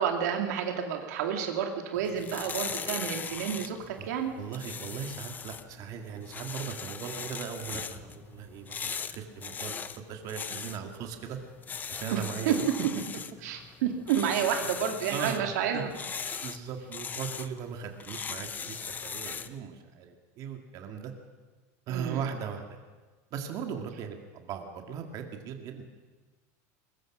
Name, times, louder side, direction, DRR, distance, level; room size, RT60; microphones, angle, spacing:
voice 1, 0.0-4.3 12.1-12.8 13.4-15.9 16.3-16.4 21.9-22.3, right 8 dB, 85° right, 4 dB, 2.4 m, -30 dB
sound 1, 2.0-19.6, left 6 dB, 20° left, 0.8 m, -40 dB
voice 2, 4.4-11.4 11.9-12.7 14.6-14.7 15.1-15.8 16.4-21.1 21.9-22.8 23.3-25.8, right 7 dB, 45° right, 4 dB, 2.2 m, -38 dB
22.0 x 21.0 x 6.2 m, 1.3 s
supercardioid pair, 145°, 9 cm